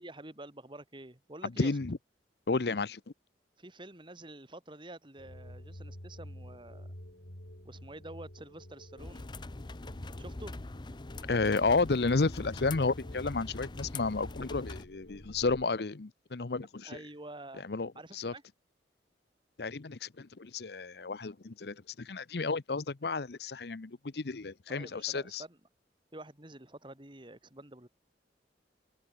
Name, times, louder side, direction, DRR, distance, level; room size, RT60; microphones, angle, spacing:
voice 1, 0.0-1.7 3.6-6.9 7.6-9.3 10.2-10.6 16.8-17.7 17.9-18.4 24.7-25.6 26.1-27.9, right 1 dB, 25° right, 2.8 m, -48 dB
voice 2, 1.6-2.0 2.5-3.0 11.3-17.0 17.6-18.3 19.6-25.4, left 3 dB, 65° left, 0.8 m, -32 dB
sound 1, 5.2-15.6, equal, 80° left, 7.9 m, -50 dB
sound 2, 9.0-14.9, left 2 dB, 25° left, 0.6 m, -43 dB
head